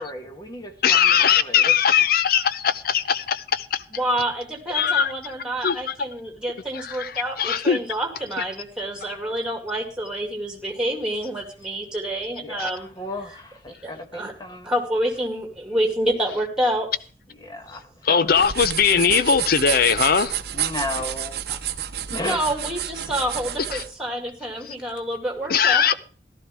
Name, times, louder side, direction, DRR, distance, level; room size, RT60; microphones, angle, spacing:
voice 1, 0.0-1.7 12.4-14.7 17.3-18.3 20.5-21.3 22.1-22.8, left 1 dB, 25° left, 1.3 m, -34 dB
voice 2, 0.8-3.8 4.7-5.1 5.6-5.9 6.7-7.8 12.6-12.7 18.0-20.4 23.7-23.8 24.7-24.8 25.5-25.9, left 7 dB, 55° left, 0.6 m, -20 dB
voice 3, 3.9-12.9 13.8-14.3 14.6-16.9 21.5-21.6 22.2-25.8, right 1 dB, 5° right, 2.4 m, -28 dB
sound 1, 18.3-23.9, right 10 dB, 60° right, 0.8 m, -30 dB
15.0 x 12.0 x 3.5 m
head